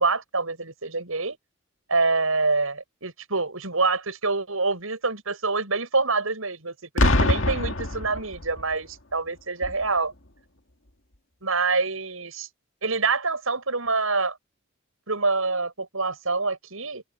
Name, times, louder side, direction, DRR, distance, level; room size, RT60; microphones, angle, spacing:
voice 1, 0.0-1.4 1.9-10.1 11.4-12.5 12.8-14.4 15.1-17.0, right 3 dB, 85° right, 7.8 m, -26 dB
Boom, 7.0-8.7 9.6-9.9, left 2 dB, 70° left, 2.1 m, -23 dB
head